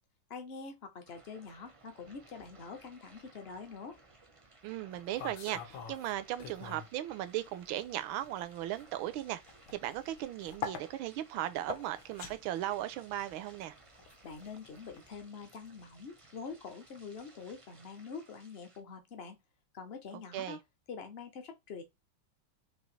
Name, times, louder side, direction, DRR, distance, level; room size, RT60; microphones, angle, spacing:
voice 1, 0.3-4.0 14.2-19.4 19.7-20.6 20.9-21.8, left 5 dB, 50° left, 0.7 m, -45 dB
sound 1, 1.0-18.8, right 2 dB, 40° right, 0.4 m, -60 dB
voice 2, 4.6-9.4 9.7-13.7 20.3-20.6, right 13 dB, 75° right, 1.3 m, -37 dB
sound 2, 4.9-7.0 7.3-15.1, left 7 dB, 70° left, 1.8 m, -46 dB
6.1 x 2.8 x 3.2 m
omnidirectional pair, 2.3 m